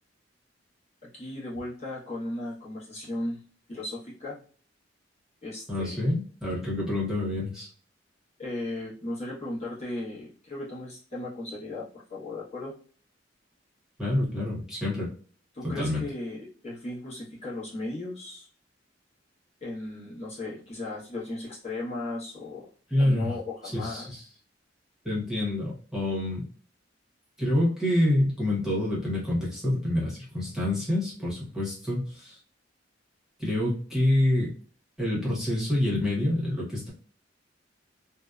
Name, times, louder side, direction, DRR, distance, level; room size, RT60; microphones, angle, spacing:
voice 1, 1.1-3.4 3.7-4.4 5.4-6.0 8.4-12.7 15.5-18.5 19.6-22.7 23.0-24.1, left 2 dB, 35° left, -7 dB, 0.9 m, -36 dB
voice 2, 5.7-7.7 14.0-15.1 15.8-16.0 22.9-23.4 23.7-24.2 25.0-26.5 27.4-32.4 33.4-34.5 35.0-36.9, left 1 dB, 5° right, -7 dB, 1.0 m, -27 dB
2.7 x 2.1 x 2.3 m, 0.43 s
head